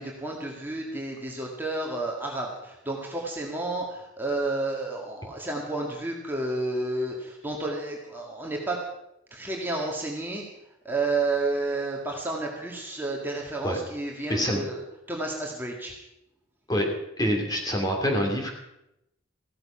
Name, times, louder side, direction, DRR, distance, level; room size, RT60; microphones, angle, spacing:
voice 1, 0.0-8.8 9.3-10.5 10.8-14.8 15.1-15.9, right 2 dB, 10° right, -1 dB, 2.0 m, -31 dB
voice 2, 14.3-14.6 16.7-16.9 17.2-18.5, equal, 20° left, 2 dB, 2.8 m, -26 dB
15.5 x 13.5 x 5.7 m, 0.85 s
head